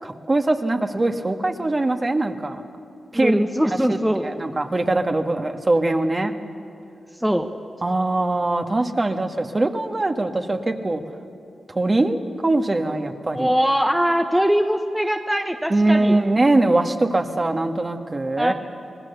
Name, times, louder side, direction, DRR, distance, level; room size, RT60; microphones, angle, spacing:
voice 1, 0.0-2.6 3.1-3.3 3.7-6.3 7.8-11.0 11.7-12.2 12.4-13.5 15.7-18.5, right 2 dB, 35° right, 5 dB, 1.7 m, -22 dB
voice 2, 3.1-4.3 7.2-7.5 13.3-16.2 18.4-18.5, equal, 5° right, 4 dB, 1.2 m, -21 dB
25.5 x 19.0 x 7.0 m, 2.6 s
cardioid pair, 60°, 0 cm